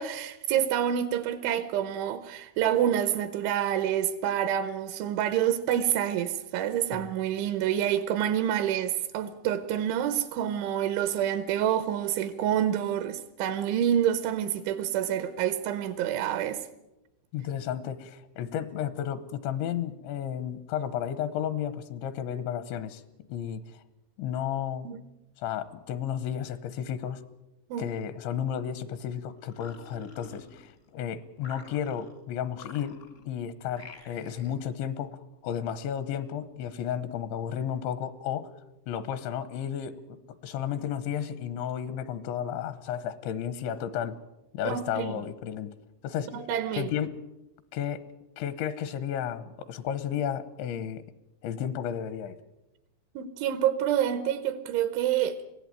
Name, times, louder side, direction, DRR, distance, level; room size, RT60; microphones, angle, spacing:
voice 1, 0.0-16.6 24.9-25.0 27.7-27.9 44.6-45.1 46.3-46.9 53.2-55.4, right 10 dB, 85° right, 3.4 m, -27 dB
voice 2, 17.3-23.0 23.3-23.8 24.2-24.9 25.4-27.2 27.8-38.5 38.9-44.2 44.5-45.7 46.0-46.4 46.7-47.3 47.7-48.1 48.4-51.0 51.4-52.4, left 9 dB, 80° left, 3.3 m, -33 dB
sound 1, 29.4-30.9 31.4-32.2 32.5-33.3 33.7-34.6, left 4 dB, 55° left, 0.8 m, -48 dB
22.5 x 16.5 x 9.0 m
omnidirectional pair, 5.3 m